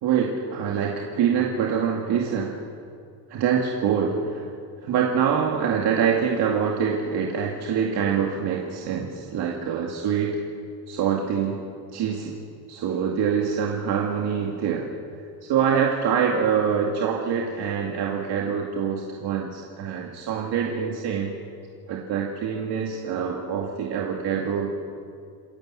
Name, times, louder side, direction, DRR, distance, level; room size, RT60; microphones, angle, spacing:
voice 1, 0.0-2.6 3.3-4.5 4.8-10.4 10.9-11.6 11.9-12.4 12.7-14.9 15.4-21.3 21.9-24.7, right 7 dB, 70° right, -1 dB, 2.5 m, -25 dB
28.5 x 17.0 x 7.6 m, 2.4 s
cardioid pair, 170°, 41 cm